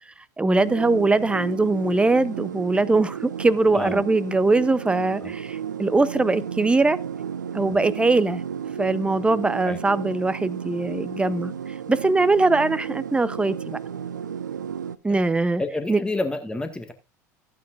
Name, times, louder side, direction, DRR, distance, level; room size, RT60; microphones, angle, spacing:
voice 1, 0.4-7.0 7.5-8.4 8.8-11.5 11.9-13.8 15.0-15.6 15.9-16.0, right 3 dB, 10° right, 0.7 m, -21 dB
sound 1, 0.6-15.0, right 8 dB, 80° right, 0.5 m, -33 dB
voice 2, 15.6-16.9, left 2 dB, 10° left, 1.7 m, -29 dB
14.5 x 9.3 x 2.5 m
figure-of-eight pair, 70°, 10 cm